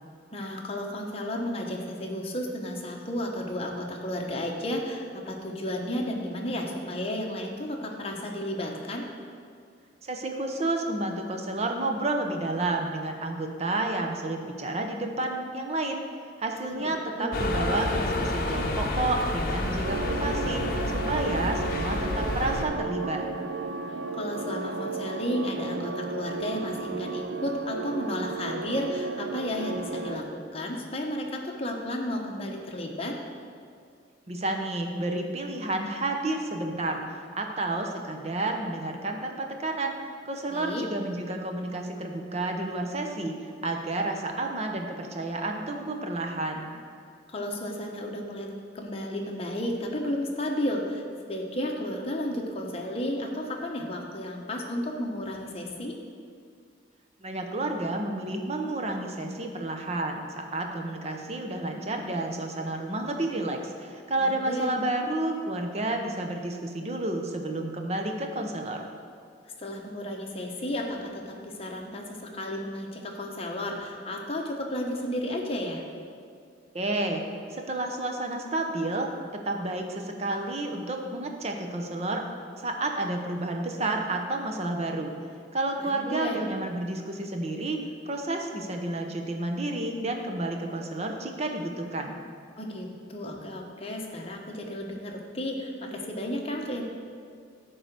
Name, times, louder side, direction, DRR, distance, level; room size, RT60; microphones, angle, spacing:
voice 1, 0.3-9.1 16.7-16.8 17.1-17.3 24.1-33.2 40.5-40.9 47.3-56.0 64.2-64.7 69.6-75.8 85.8-86.4 92.6-96.8, left 1 dB, 30° left, 0 dB, 1.0 m, -33 dB
voice 2, 10.0-16.0 16.4-23.3 34.3-37.0 37.4-39.9 40.2-46.7 57.2-68.8 76.7-77.2 77.5-82.2 82.6-85.2 85.5-87.8 88.0-92.2, right 2 dB, 35° right, 3 dB, 0.8 m, -30 dB
sound 1, 17.3-22.6, left 2 dB, 55° left, 0.8 m, -29 dB
sound 2, 19.8-30.2, right 3 dB, 90° right, 0.5 m, -34 dB
10.5 x 3.9 x 6.7 m, 2.3 s
head